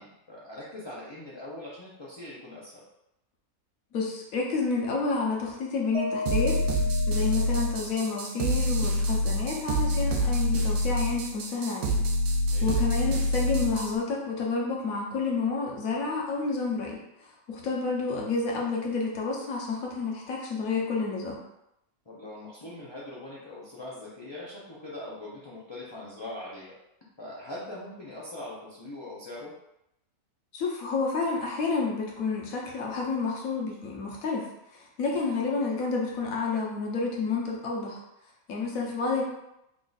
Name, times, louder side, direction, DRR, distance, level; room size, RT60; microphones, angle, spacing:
voice 1, 0.0-2.8 12.5-12.7 17.6-17.7 22.1-26.8 27.2-29.5 38.7-38.9, left 1 dB, 40° left, -7 dB, 0.4 m, -42 dB
voice 2, 3.9-6.6 7.1-12.0 12.6-21.4 30.5-34.5 34.7-38.0 38.5-39.2, left 4 dB, 70° left, -2 dB, 1.3 m, -30 dB
Mallet percussion, 5.9-8.2, left 2 dB, 55° right, 0.8 m, -35 dB
sound 1, 6.3-14.0, equal, 90° right, 1.1 m, -26 dB
3.6 x 2.4 x 3.9 m, 0.84 s
omnidirectional pair, 1.5 m